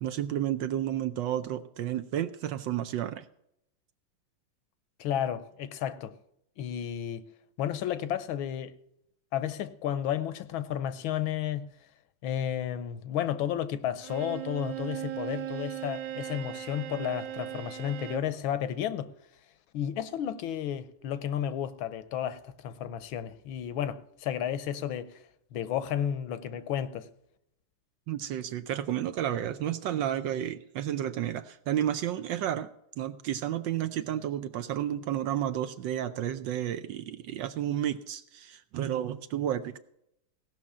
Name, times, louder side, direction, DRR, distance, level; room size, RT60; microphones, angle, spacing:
voice 1, 0.0-3.2 28.1-32.7 33.0-39.8, right 11 dB, 70° right, 1.2 m, -31 dB
voice 2, 5.0-6.1 6.6-7.2 7.6-8.7 9.3-11.7 12.2-19.1 19.7-25.1 25.5-27.1, left 10 dB, 75° left, 1.5 m, -32 dB
Bowed string instrument, 14.0-18.4, right 12 dB, 90° right, 1.8 m, -38 dB
17.0 x 6.0 x 7.2 m
omnidirectional pair, 2.4 m